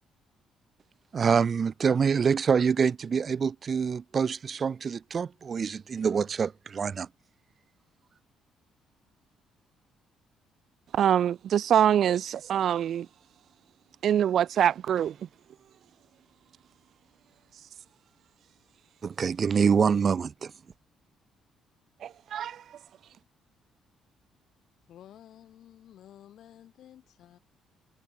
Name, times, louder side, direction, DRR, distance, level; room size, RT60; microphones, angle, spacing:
voice 1, 1.1-7.1 19.0-20.5, right 6 dB, 40° right, 2.6 m, -26 dB
voice 2, 10.9-13.1 14.0-15.2 22.0-22.6, right 9 dB, 60° right, 0.9 m, -24 dB
voice 3, 24.9-27.4, left 11 dB, 70° left, 2.1 m, -52 dB
cardioid pair, 100°, 0 cm